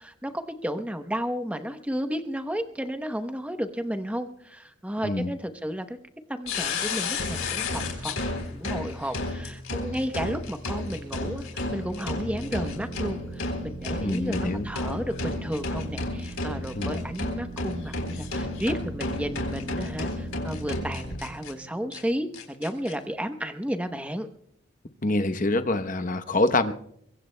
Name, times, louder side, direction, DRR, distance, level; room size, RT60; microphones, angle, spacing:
voice 1, 0.0-6.0 6.3-24.3, equal, 5° right, 7 dB, 0.8 m, -33 dB
sound 1, 6.5-21.5 21.9-22.0 22.3-22.9, left 2 dB, 90° left, 3.7 m, -32 dB
sound 2, 11.2-22.7, right 2 dB, 20° left, 4.7 m, -41 dB
voice 2, 14.0-14.7 16.7-17.0 25.0-26.7, left 2 dB, 40° left, 10 dB, 0.8 m, -25 dB
23.5 x 23.0 x 2.2 m, 0.70 s
head